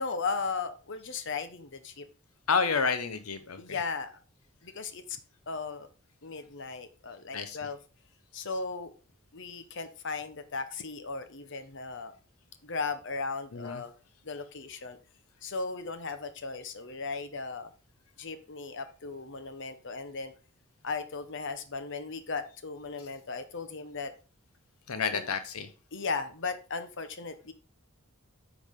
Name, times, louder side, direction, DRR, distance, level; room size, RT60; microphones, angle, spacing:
voice 1, 0.0-2.0 3.6-4.1 4.6-5.2 5.5-5.9 6.2-7.8 8.3-8.9 9.3-12.1 12.6-13.9 14.2-15.0 15.4-17.7 18.2-20.3 20.8-24.1 25.1-25.3 25.9-27.5, left 4 dB, 60° left, 9 dB, 1.0 m, -36 dB
voice 2, 2.5-3.8 7.3-7.6 13.5-13.8 24.9-25.7, left 5 dB, 85° left, 9 dB, 0.9 m, -30 dB
9.8 x 6.2 x 3.7 m, 0.34 s
head